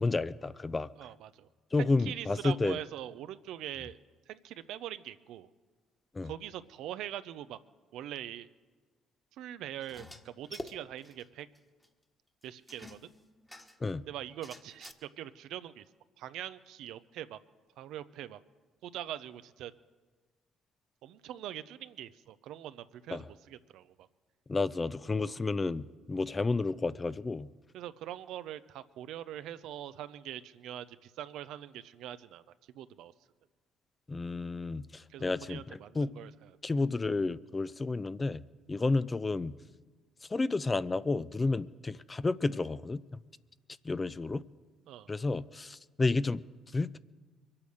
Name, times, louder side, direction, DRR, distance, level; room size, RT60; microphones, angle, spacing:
voice 1, 0.0-0.9 1.7-2.8 6.1-6.3 13.8-14.0 23.1-23.2 24.5-27.5 34.1-36.1 36.6-38.4 38.7-39.5 40.3-43.0 43.8-44.4 45.1-46.4 46.7-47.0, left 3 dB, 25° left, 16 dB, 0.5 m, -31 dB
voice 2, 1.0-1.5 1.8-4.0 4.3-5.5 6.2-7.6 7.9-8.5 9.3-11.5 12.4-13.0 14.1-15.8 16.2-17.4 17.8-18.4 18.8-19.7 21.0-24.1 25.3-25.4 27.7-33.1 35.1-36.6 44.9-45.1, right 12 dB, 75° right, 13 dB, 0.6 m, -43 dB
sound 1, 9.8-11.2 11.5-11.6 11.8-11.9 12.7-13.9 14.4-14.9, left 1 dB, 10° left, 1.5 m, -47 dB
23.5 x 8.7 x 6.5 m, 1.4 s
supercardioid pair, 65°, 0 cm